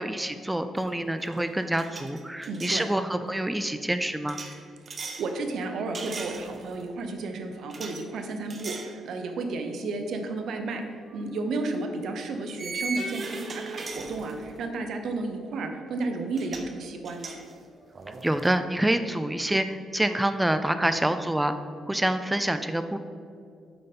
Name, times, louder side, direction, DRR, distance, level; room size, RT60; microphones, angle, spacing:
voice 1, 0.0-4.4 18.2-21.5 21.9-23.0, right 1 dB, 10° right, 10 dB, 0.3 m, -27 dB
sound 1, 0.8-1.0 1.2-2.9 4.3-5.3 5.9-6.8 7.7-8.0 8.5-9.0 9.4-9.6 11.1-11.2 12.6-14.7 16.0-16.1 16.3-16.7 17.0-18.5, right 3 dB, 40° right, 0.8 m, -38 dB
voice 2, 2.4-2.9 4.9-10.9 11.1-17.4, right 3 dB, 70° right, 5 dB, 0.8 m, -32 dB
7.8 x 5.0 x 4.2 m, 2.4 s
cardioid pair, 90°, 0 cm